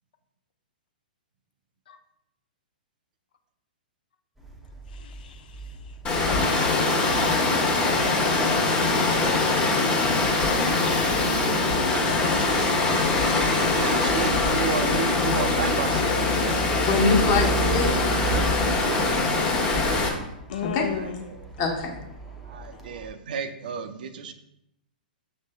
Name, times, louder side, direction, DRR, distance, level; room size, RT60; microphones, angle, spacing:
sound 1, 4.4-23.1, right 1 dB, 5° right, 0.6 m, -36 dB
voice 1, 4.9-5.8 20.5-21.3, left 8 dB, 65° left, 7 dB, 0.4 m, -36 dB
Water, 6.0-20.1, left 3 dB, 20° left, 0.9 m, -23 dB
voice 2, 13.8-16.6 21.0-21.1 22.5-24.3, right 7 dB, 65° right, 8 dB, 0.4 m, -32 dB
voice 3, 16.9-19.2 20.7-20.8 21.6-22.0, left 4 dB, 40° left, 1 dB, 1.2 m, -25 dB
6.4 x 3.2 x 2.3 m, 0.84 s
hypercardioid pair, 125°, 5 cm